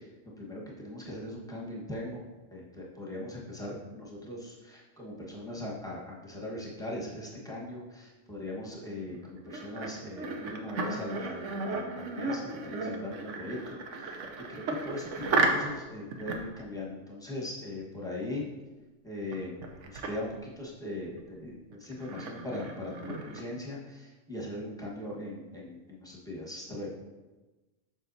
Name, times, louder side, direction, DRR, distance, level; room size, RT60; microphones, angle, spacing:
voice 1, 0.4-2.2 2.5-13.6 14.5-18.5 19.0-19.6 20.0-20.3 20.6-24.0 24.3-26.9, left 1 dB, 5° left, -4 dB, 1.2 m, -39 dB
sound 1, 9.1-15.8 16.1-16.6 19.3-19.4 19.6-20.1 21.2-21.3 21.7-23.4, right 3 dB, 75° right, 1.1 m, -34 dB
7.4 x 6.2 x 2.7 m, 1.2 s
omnidirectional pair, 1.3 m